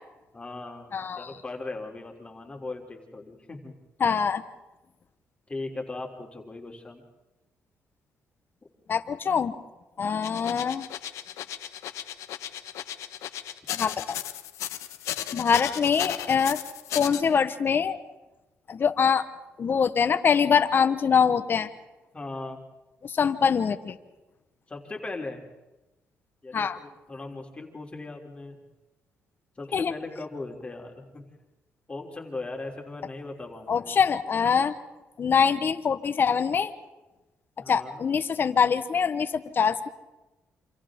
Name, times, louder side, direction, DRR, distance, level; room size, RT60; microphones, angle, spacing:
voice 1, 0.3-3.7 5.5-7.0 22.1-22.6 24.7-25.4 26.4-28.6 29.6-31.3 31.9-34.0 37.6-38.0, left 2 dB, 20° left, 1 dB, 3.4 m, -38 dB
voice 2, 0.9-1.3 4.0-4.4 8.9-9.6 10.0-10.9 13.7-14.2 15.3-16.6 16.9-18.0 18.7-19.2 19.6-21.7 23.0-24.0 26.5-26.8 29.7-29.9 33.7-34.7 35.2-36.7 37.7-39.9, left 6 dB, 45° left, 10 dB, 1.3 m, -24 dB
sound 1, 10.2-17.2, left 12 dB, 90° left, 1.2 m, -35 dB
28.5 x 26.5 x 3.8 m, 1.1 s
cardioid pair, 90°, 5 cm